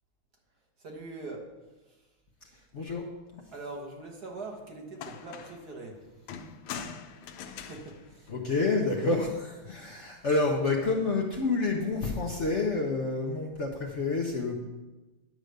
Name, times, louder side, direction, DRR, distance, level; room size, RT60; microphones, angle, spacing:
voice 1, 0.8-1.5 3.5-6.0 7.6-8.3 9.6-9.9, right 2 dB, 50° right, 0 dB, 1.9 m, -42 dB
voice 2, 2.7-3.1 3.3-3.4 7.5-7.7 8.3-14.6, left 3 dB, 50° left, 0 dB, 0.9 m, -29 dB
sound 1, 4.5-4.6 5.0-5.7 6.3-9.0 10.2-10.7, left 7 dB, 85° left, 1.6 m, -43 dB
10.5 x 5.0 x 6.5 m, 1.1 s
omnidirectional pair, 2.3 m